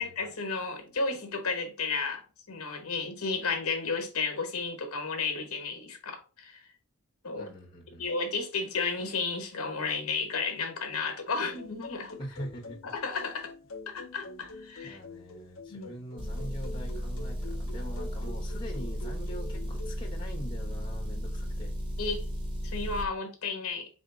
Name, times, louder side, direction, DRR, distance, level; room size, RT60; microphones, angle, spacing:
voice 1, 0.0-6.6 7.2-7.5 8.0-12.2 12.8-13.5 13.9-15.0 15.7-15.9 22.0-22.3 22.6-23.9, left 4 dB, 85° left, 1.0 m, -33 dB
voice 2, 7.4-8.1 12.2-12.9 14.8-21.7, equal, 20° left, 1.1 m, -43 dB
sound 1, 11.4-20.0, left 2 dB, 65° left, 0.6 m, -46 dB
Motor vehicle (road) / Engine, 16.2-23.1, equal, 20° right, 0.7 m, -34 dB
4.3 x 2.8 x 3.7 m
head